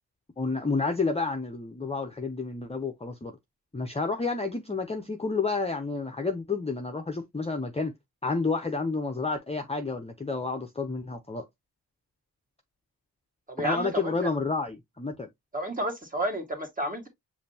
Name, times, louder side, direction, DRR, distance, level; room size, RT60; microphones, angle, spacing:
voice 1, 0.4-3.3 3.7-7.9 8.2-11.4 13.6-15.3, left 4 dB, 15° left, 0.6 m, -30 dB
voice 2, 13.5-14.3 15.5-17.1, right 1 dB, 20° right, 1.8 m, -31 dB
7.2 x 2.6 x 2.7 m
wide cardioid pair, 125°, 39 cm